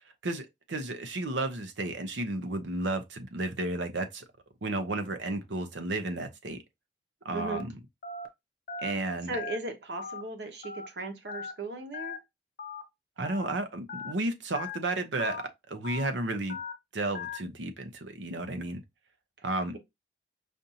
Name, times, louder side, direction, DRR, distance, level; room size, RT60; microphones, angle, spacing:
voice 1, 0.2-4.2 4.6-6.6 7.2-7.7 8.8-9.4 13.2-15.4 15.7-16.6 16.9-18.8 19.4-19.7, right 2 dB, 85° right, 0.8 m, -32 dB
voice 2, 7.3-7.7 9.3-12.2, right 2 dB, 65° right, 1.1 m, -37 dB
Telephone, 7.4-7.6 8.0-8.3 8.7-8.9 9.3-9.6 10.0-10.2 10.6-10.9 11.3-11.5 11.9-12.2 12.6-12.8 13.2-13.5 13.9-14.1 14.5-14.8 15.2-15.4 15.8-16.1 16.5-16.7 17.1-17.4, left 5 dB, 50° left, 0.7 m, -38 dB
5.0 x 2.7 x 2.8 m
head